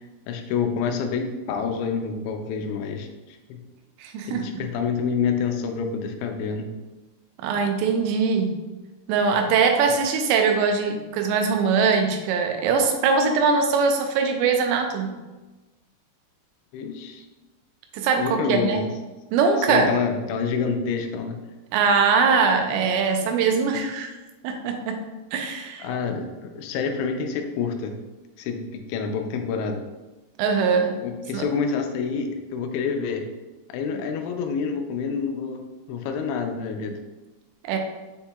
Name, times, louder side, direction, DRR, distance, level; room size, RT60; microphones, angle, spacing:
voice 1, 0.3-3.6 4.3-6.7 16.7-17.3 18.2-18.9 19.7-21.4 25.8-27.9 28.4-28.6 28.9-29.8 31.0-33.3 33.7-35.6 35.9-37.0, left 5 dB, 85° left, 4 dB, 2.4 m, -27 dB
voice 2, 4.0-4.6 7.4-8.6 9.1-15.1 17.9-18.8 19.3-19.9 21.7-24.1 24.4-25.0 25.3-25.9 30.4-30.9 31.3-31.5 37.6-37.8, right 5 dB, 90° right, 4 dB, 2.8 m, -22 dB
6.8 x 2.8 x 2.3 m, 1.1 s
omnidirectional pair, 5.0 m